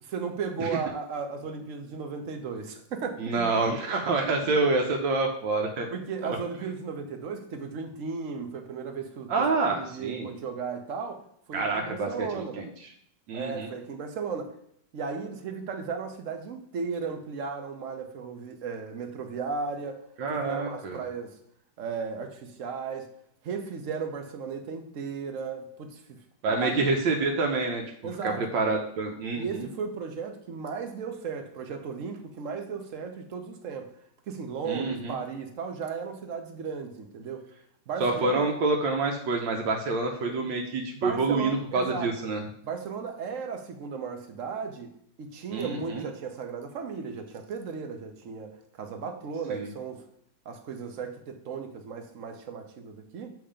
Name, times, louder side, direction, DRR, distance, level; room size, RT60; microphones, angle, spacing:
voice 1, 0.0-3.6 4.2-4.6 5.9-11.2 11.5-12.6 13.3-14.5 14.9-20.0 20.3-21.4 21.8-23.1 23.4-26.2 26.5-26.8 28.0-28.4 29.3-33.9 34.3-37.4 37.9-38.5 40.3-40.4 41.0-42.1 42.6-44.9 45.2-50.1 50.5-53.3, right 5 dB, 55° right, 6 dB, 1.0 m, -35 dB
voice 2, 3.2-5.9 6.2-6.4 9.3-10.3 11.5-12.7 13.3-13.7 20.2-21.0 26.4-27.8 28.2-29.7 34.6-35.2 38.0-42.4 45.5-46.0 49.5-49.7, right 3 dB, 85° right, 2 dB, 1.4 m, -27 dB
7.2 x 3.4 x 5.0 m, 0.70 s
omnidirectional pair, 2.0 m